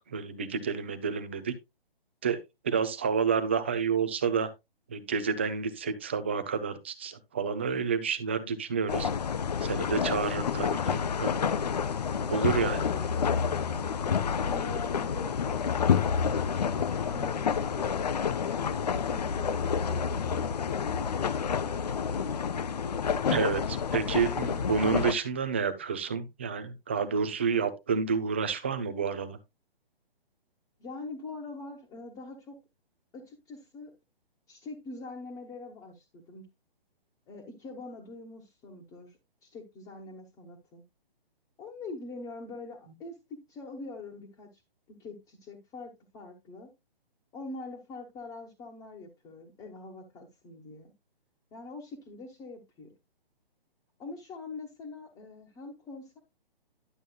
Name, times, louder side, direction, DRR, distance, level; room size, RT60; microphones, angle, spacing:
voice 1, 0.1-1.5 2.2-2.4 2.6-4.5 4.9-9.1 9.6-11.5 12.1-12.8 23.3-29.4, right 6 dB, 15° right, 0.4 m, -29 dB
sound 1, 8.9-25.1, left 6 dB, 45° left, 0.5 m, -29 dB
voice 2, 12.2-13.9 14.4-15.8 16.1-16.3 17.0-18.1 18.8-21.9 30.8-32.6 33.1-34.0 34.5-36.4 37.3-40.8 41.6-44.6 44.9-46.7 47.3-50.9 51.5-52.9 54.0-56.2, left 3 dB, 10° left, 1.1 m, -44 dB
11.0 x 7.4 x 2.3 m
figure-of-eight pair, 135°, 29 cm